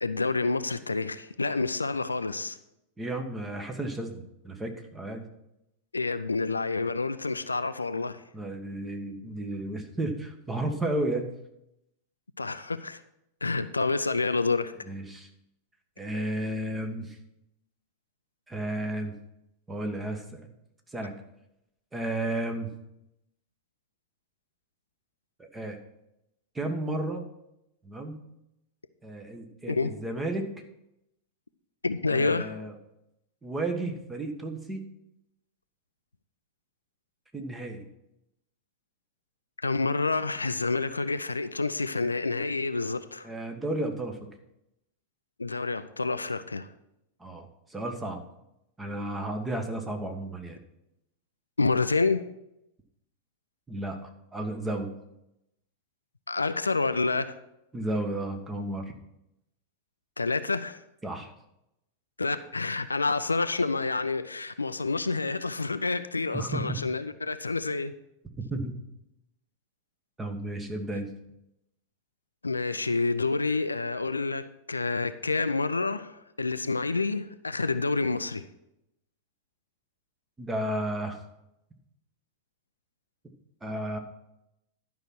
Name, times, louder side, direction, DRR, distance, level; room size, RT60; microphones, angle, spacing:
voice 1, 0.0-2.6 5.9-8.2 12.4-13.0 13.4-14.7 29.7-29.9 31.8-32.6 39.6-43.3 45.4-46.7 51.6-52.2 56.3-57.4 60.2-60.8 62.2-67.9 72.4-78.5, left 3 dB, 80° left, 0.5 m, -28 dB
voice 2, 3.0-5.3 8.3-11.3 14.9-15.3 16.0-17.2 18.5-19.1 19.7-20.4 20.9-21.1 21.9-22.7 25.4-25.8 26.5-27.2 27.8-28.2 29.0-30.5 32.1-32.7 33.4-34.8 37.3-37.8 43.2-44.2 47.2-48.2 48.8-50.6 53.7-54.9 57.7-58.8 61.0-61.3 66.3-66.8 68.5-68.8 70.2-71.1 80.4-81.2 83.6-84.0, right 1 dB, 10° right, 1.5 m, -33 dB
11.5 x 5.7 x 6.1 m
figure-of-eight pair, 90°, 0 cm